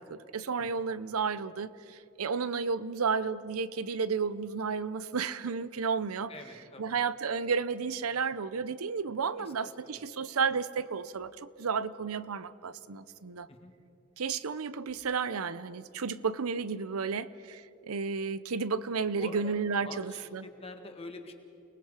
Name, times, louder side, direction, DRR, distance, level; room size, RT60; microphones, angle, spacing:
voice 1, 0.0-6.3 6.8-13.5 14.2-20.4, right 5 dB, 90° right, 15 dB, 0.7 m, -32 dB
voice 2, 6.3-7.0 9.4-10.0 13.5-13.7 19.2-21.3, left 2 dB, 30° left, 5 dB, 1.7 m, -46 dB
29.5 x 20.0 x 4.9 m, 2.7 s
head